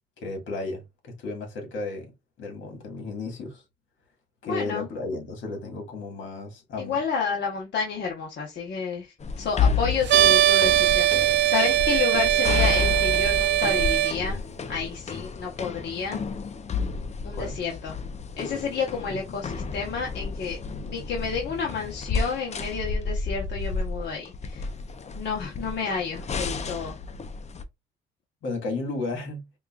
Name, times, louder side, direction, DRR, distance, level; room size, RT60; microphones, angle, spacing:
voice 1, 0.2-2.1 2.4-3.6 4.4-7.0 17.3-17.6 28.4-29.4, left 3 dB, 75° left, 1.9 m, -33 dB
voice 2, 4.4-4.9 6.8-14.4 14.7-16.2 17.2-17.9 18.4-20.6 20.8-24.7 25.2-26.9, left 5 dB, 60° left, 1.0 m, -30 dB
sound 1, 9.2-27.6, left 5 dB, 35° left, 0.5 m, -31 dB
sound 2, 10.1-14.1, right 14 dB, 65° right, 0.6 m, -20 dB
5.1 x 2.4 x 2.4 m
cardioid pair, 90°, 20 cm